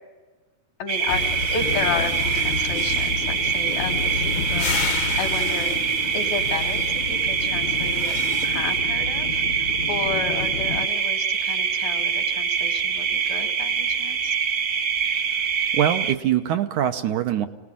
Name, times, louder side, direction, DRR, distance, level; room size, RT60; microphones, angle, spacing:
voice 1, 0.8-5.8 6.1-14.4, left 5 dB, 85° left, 6 dB, 3.9 m, -32 dB
sound 1, 0.9-16.1, right 7 dB, 50° right, 1.6 m, -24 dB
sound 2, 0.9-8.8, right 4 dB, 85° right, 6.7 m, -50 dB
sound 3, 1.1-10.9, left 6 dB, 65° left, 1.8 m, -30 dB
voice 2, 15.7-17.5, right 10 dB, 70° right, 7 dB, 2.3 m, -23 dB
28.0 x 19.0 x 10.0 m, 1.3 s
omnidirectional pair, 4.0 m